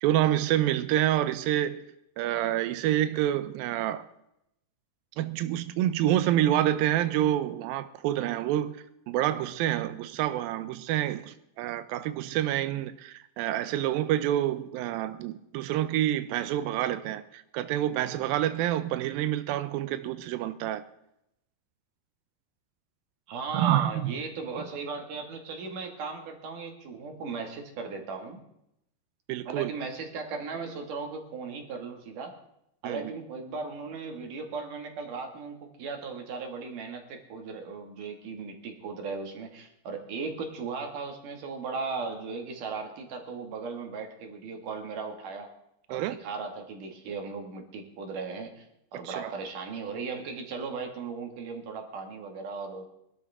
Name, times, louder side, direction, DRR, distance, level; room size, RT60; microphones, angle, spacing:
voice 1, 0.0-1.9 2.2-4.1 5.2-20.8 23.5-24.1 29.3-29.7 32.8-33.1 45.9-46.2 49.0-49.3, right 12 dB, 85° right, 2.1 m, -28 dB
voice 2, 23.3-28.4 29.5-32.4 32.8-45.5 45.9-48.6 48.9-52.8, right 4 dB, 55° right, 3.3 m, -37 dB
23.5 x 12.5 x 3.6 m
omnidirectional pair, 5.0 m